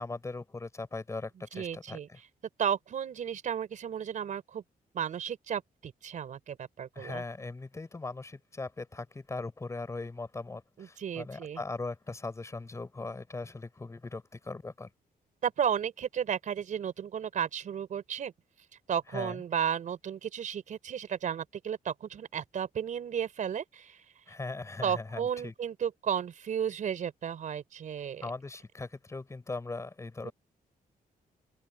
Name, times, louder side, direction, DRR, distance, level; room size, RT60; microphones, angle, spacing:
voice 1, 0.0-2.2 6.9-14.9 19.1-19.4 24.3-25.5 28.2-30.3, left 3 dB, 20° left, 4.4 m, -39 dB
voice 2, 1.5-2.1 2.6-4.6 4.9-7.2 10.8-11.6 15.4-18.3 18.9-24.0 24.8-28.2 30.2-30.3, right 8 dB, 55° right, 4.5 m, -33 dB
open air
wide cardioid pair, 160°, 16 cm